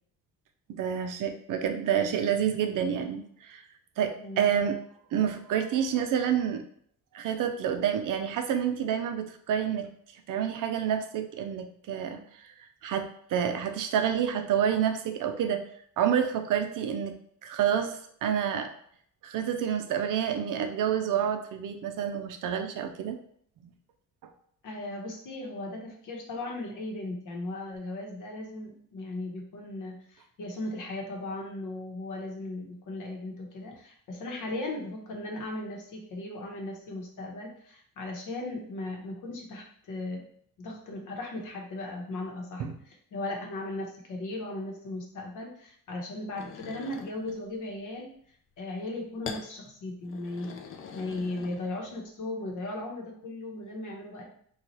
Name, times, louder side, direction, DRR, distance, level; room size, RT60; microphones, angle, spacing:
voice 1, 0.7-3.6 4.0-4.8 5.1-6.6 7.1-9.9 10.3-12.5 12.8-15.6 16.0-17.1 17.4-18.7 19.2-23.2 42.6-42.7, right 8 dB, 65° right, 6 dB, 0.5 m, -28 dB
voice 2, 24.6-40.2 40.6-48.1 48.6-50.6 50.9-54.2, left 2 dB, 60° left, 0 dB, 0.9 m, -37 dB
sound 1, 46.4-47.4 49.2-49.5 50.1-51.9, left 5 dB, 40° left, 0.4 m, -42 dB
4.0 x 2.3 x 3.0 m, 0.63 s
cardioid pair, 145°, 35 cm